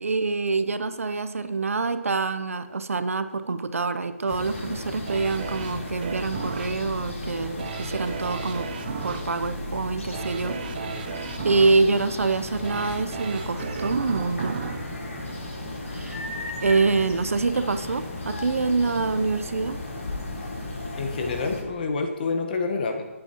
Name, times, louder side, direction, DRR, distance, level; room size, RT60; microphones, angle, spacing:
voice 1, 0.0-8.7 9.0-10.9 11.4-14.6 15.9-16.2 16.6-19.8, right 3 dB, 70° right, 11 dB, 0.8 m, -26 dB
sound 1, 4.3-21.6, left 2 dB, 75° left, 3.9 m, -35 dB
sound 2, 5.1-16.0 16.5-16.6, right 6 dB, 40° right, 0.6 m, -36 dB
voice 2, 20.9-23.0, left 4 dB, 40° left, 4 dB, 1.3 m, -28 dB
16.5 x 8.9 x 3.0 m, 1.4 s
figure-of-eight pair, 150°, 8 cm